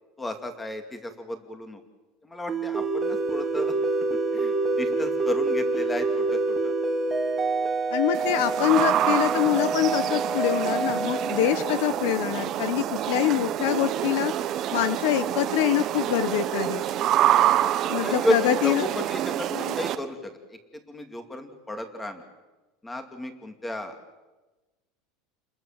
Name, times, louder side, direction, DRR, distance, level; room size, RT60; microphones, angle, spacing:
voice 1, 0.2-1.8 2.2-3.7 4.1-6.7 10.6-10.8 14.7-14.8 17.1-22.3 22.8-24.0, left 1 dB, 10° left, 7 dB, 2.4 m, -33 dB
sound 1, 2.5-12.8, right 3 dB, 10° right, 2.4 m, -27 dB
voice 2, 7.9-14.3 14.7-16.8 17.9-18.8 19.5-19.7, left 12 dB, 65° left, 13 dB, 1.2 m, -25 dB
sound 2, 8.1-19.9, right 12 dB, 35° right, 1.1 m, -27 dB
30.0 x 21.5 x 7.5 m, 1.2 s
supercardioid pair, 165°, 0 cm